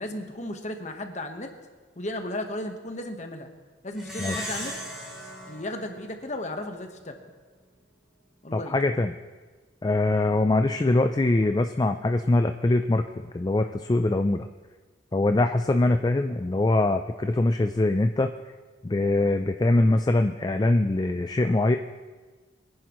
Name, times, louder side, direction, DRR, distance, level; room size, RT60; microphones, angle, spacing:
voice 1, 0.0-1.5 2.0-3.5 3.8-4.7 5.5-7.2 8.4-8.8, left 1 dB, 40° left, 5 dB, 1.2 m, -35 dB
Plucked string instrument, 4.0-6.8, equal, 5° right, 2.6 m, -37 dB
voice 2, 4.2-4.5 8.5-9.1 9.8-13.0 13.3-14.5 15.1-18.3 18.8-21.8, left 2 dB, 20° left, 7 dB, 0.3 m, -23 dB
23.0 x 10.5 x 3.1 m, 1.4 s
head